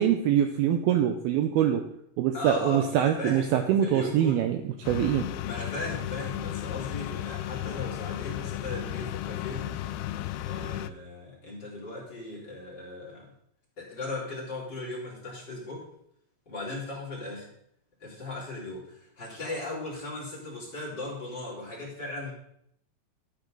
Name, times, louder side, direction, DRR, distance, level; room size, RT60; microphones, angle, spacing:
voice 1, 0.0-1.8 2.2-4.6 4.9-5.3, right 10 dB, 80° right, 7 dB, 2.3 m, -24 dB
voice 2, 2.3-4.4 5.4-9.9 10.4-13.3 13.8-15.8 16.5-17.5 18.0-22.3, left 2 dB, 25° left, -6 dB, 3.8 m, -37 dB
sound 1, 4.8-10.9, left 13 dB, 80° left, 2.4 m, -34 dB
13.0 x 9.5 x 3.9 m, 0.73 s
omnidirectional pair, 4.9 m